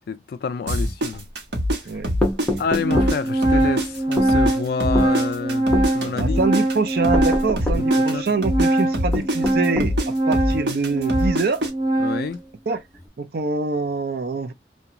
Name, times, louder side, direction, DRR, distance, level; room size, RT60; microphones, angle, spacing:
voice 1, 0.1-1.3 1.9-2.0 2.6-5.7 5.9-6.4 7.7-8.3 12.0-12.4, left 5 dB, 55° left, 0.3 m, -28 dB
sound 1, 0.7-3.2 3.4-7.3 7.6-11.7, equal, 75° right, 0.9 m, -24 dB
Organ, 1.1-1.2 2.1-2.2 2.5-12.4, right 1 dB, 25° right, 0.9 m, -22 dB
sound 2, 2.2-3.2 4.2-4.3 4.9-5.1 5.7-5.9 7.1-7.9 9.1-10.0, left 1 dB, 5° left, 0.7 m, -25 dB
voice 2, 6.1-11.6 12.7-12.8 13.2-14.5, right 4 dB, 60° right, 0.5 m, -25 dB
2.4 x 2.2 x 2.8 m
head